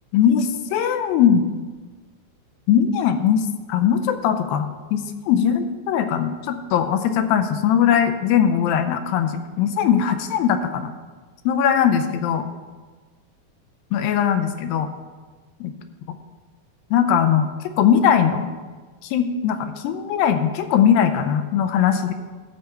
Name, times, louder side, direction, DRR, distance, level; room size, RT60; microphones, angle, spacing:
voice 1, 0.1-1.5 2.7-10.9 11.5-12.5 13.9-14.9 15.6-15.7 16.9-18.5 19.0-22.1, left 8 dB, 80° left, 9 dB, 2.3 m, -20 dB
12.5 x 4.5 x 6.5 m, 1.4 s
omnidirectional pair, 4.3 m